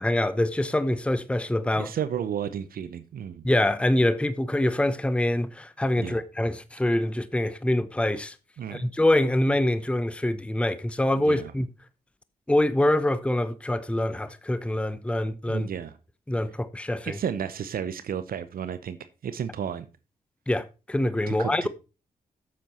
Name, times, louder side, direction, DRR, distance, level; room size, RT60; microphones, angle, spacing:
voice 1, 0.0-1.9 3.4-8.3 8.7-11.7 12.5-15.7 16.3-17.2 20.5-21.7, left 1 dB, 5° left, 0.7 m, -25 dB
voice 2, 1.7-3.5 6.0-6.2 8.6-8.9 11.1-11.5 15.5-16.0 17.0-19.0 19.2-19.9 21.3-21.7, right 8 dB, 70° right, 0.8 m, -32 dB
8.3 x 7.3 x 4.3 m
supercardioid pair, 50°, 16 cm